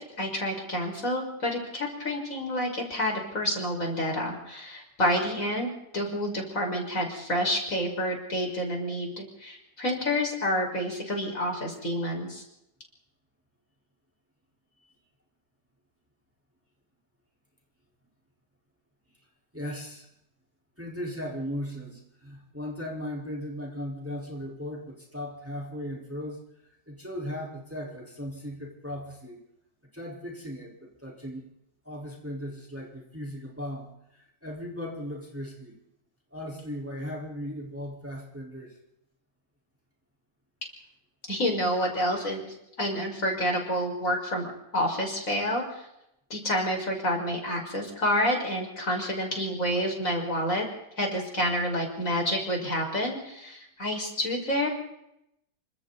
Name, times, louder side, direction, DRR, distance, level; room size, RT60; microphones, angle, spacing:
voice 1, 0.2-12.4 41.3-45.9 46.3-50.7 51.0-54.7, equal, 50° left, 1 dB, 6.1 m, -29 dB
voice 2, 19.5-20.1 20.8-29.4 29.9-31.5 31.8-35.8 36.3-38.7, equal, 5° right, -2 dB, 4.5 m, -37 dB
28.0 x 25.5 x 4.2 m, 0.81 s
omnidirectional pair, 1.8 m